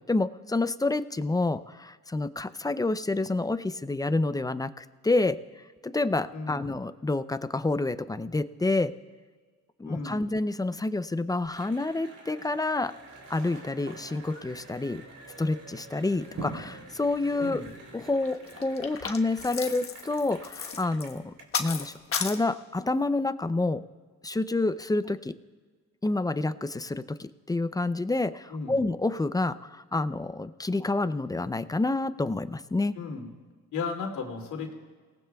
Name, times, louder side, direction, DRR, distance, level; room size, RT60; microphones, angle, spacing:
voice 1, 0.1-5.4 5.8-9.0 9.8-12.9 13.3-15.0 15.4-17.7 17.9-23.8 24.2-25.4 26.0-33.0, left 2 dB, 10° left, 13 dB, 0.5 m, -28 dB
voice 2, 6.3-6.7 9.8-10.2 17.4-17.7 28.5-28.8 32.9-33.3 33.7-34.7, left 4 dB, 75° left, 1 dB, 2.6 m, -34 dB
Cheering / Applause, 11.5-21.4, right 3 dB, 75° right, 3.7 m, -50 dB
sound 1, 12.9-18.2, right 3 dB, 60° right, 3.1 m, -46 dB
sound 2, 17.4-17.7 18.1-22.4, left 6 dB, 45° left, 1.3 m, -35 dB
29.5 x 18.5 x 2.3 m, 1.5 s
cardioid pair, 90°, 30 cm